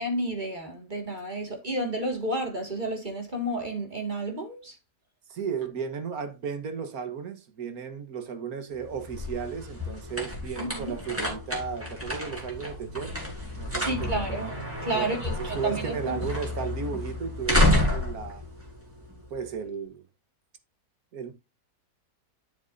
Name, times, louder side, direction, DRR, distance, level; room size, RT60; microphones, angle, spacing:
voice 1, 0.0-4.8 10.6-10.9 13.8-16.2, right 1 dB, 30° right, 2.2 m, -31 dB
voice 2, 5.3-13.1 13.6-14.4 14.9-18.4 19.3-20.0 21.1-21.3, right 6 dB, 65° right, 1.7 m, -35 dB
sound 1, 8.8-19.5, left 1 dB, 10° right, 3.2 m, -30 dB
10.5 x 7.0 x 2.6 m
omnidirectional pair, 1.7 m